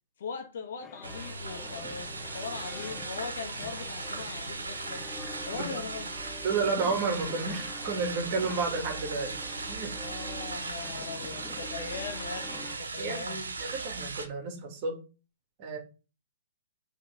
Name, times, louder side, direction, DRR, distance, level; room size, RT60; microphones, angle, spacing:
voice 1, 0.2-5.0 5.4-6.1 10.0-13.5, left 5 dB, 65° left, 1.6 m, -40 dB
sound 1, 0.8-12.8, left 4 dB, 20° left, 0.7 m, -46 dB
sound 2, 1.0-14.3, right 3 dB, 85° right, 1.1 m, -38 dB
voice 2, 5.5-5.9 6.4-9.4 9.7-10.0 13.0-15.0 15.6-15.8, right 4 dB, 40° right, 2.3 m, -32 dB
5.7 x 3.6 x 5.1 m
hypercardioid pair, 125°, 0 cm